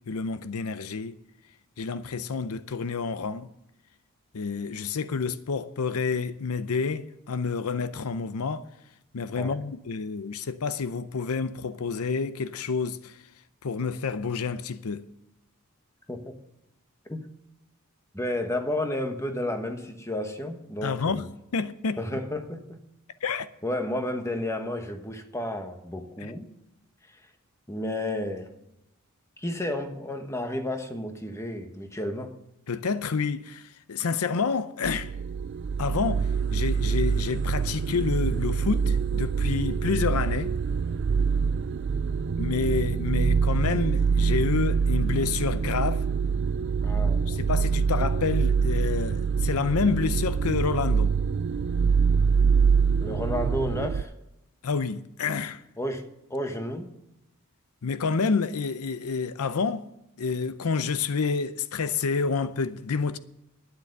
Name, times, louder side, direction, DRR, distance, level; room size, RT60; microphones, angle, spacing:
voice 1, 0.1-1.2 1.8-3.5 4.3-8.7 9.1-13.2 13.6-15.0 20.8-21.3 21.5-22.0 23.2-23.5 26.2-26.3 32.7-35.1 35.8-40.5 42.4-46.1 47.3-51.1 54.6-55.6 57.8-59.9 60.2-63.2, left 5 dB, 75° left, 0.6 m, -29 dB
voice 2, 18.1-21.3 22.0-22.8 23.6-26.5 27.7-28.5 29.4-32.3 46.8-47.4 53.0-54.1 55.8-56.9, left 1 dB, 15° left, 1.2 m, -32 dB
sound 1, 34.8-54.0, right 5 dB, 50° right, 0.3 m, -25 dB
12.0 x 9.7 x 6.6 m
head